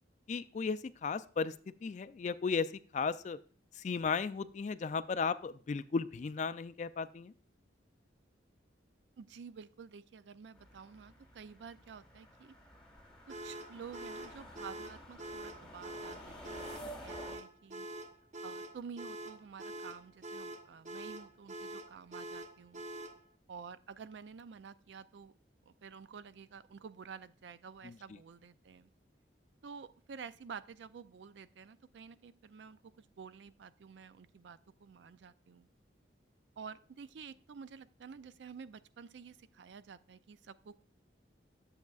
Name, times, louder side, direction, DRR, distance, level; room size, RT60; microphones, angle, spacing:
voice 1, 0.3-1.5 1.8-3.4 3.8-7.3 27.8-27.9, left 5 dB, 40° left, 14 dB, 0.3 m, -35 dB
voice 2, 9.2-12.5 13.3-17.9 18.4-22.9 23.5-25.3 25.7-28.9 29.6-35.7 36.6-40.8, right 6 dB, 70° right, 14 dB, 0.4 m, -50 dB
sound 1, 10.5-17.4, equal, 5° left, 1.5 m, -51 dB
sound 2, 13.3-23.2, right 1 dB, 40° right, 0.7 m, -45 dB
10.5 x 7.2 x 2.4 m, 0.43 s
head